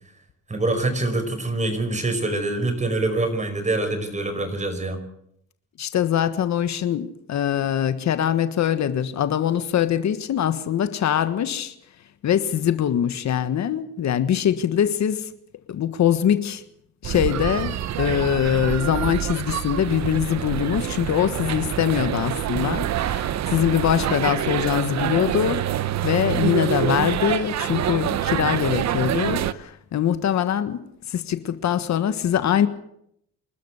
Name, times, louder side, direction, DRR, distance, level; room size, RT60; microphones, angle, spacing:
voice 1, 0.5-5.0, right 2 dB, 25° right, 5.3 m, -25 dB
voice 2, 5.8-11.7 12.2-15.3 15.7-16.6 17.0-30.8 31.1-32.7, left 10 dB, 65° left, 1.5 m, -23 dB
sound 1, 17.0-29.5, right 11 dB, 65° right, 0.9 m, -26 dB
26.5 x 13.0 x 8.2 m
cardioid pair, 90°, 30 cm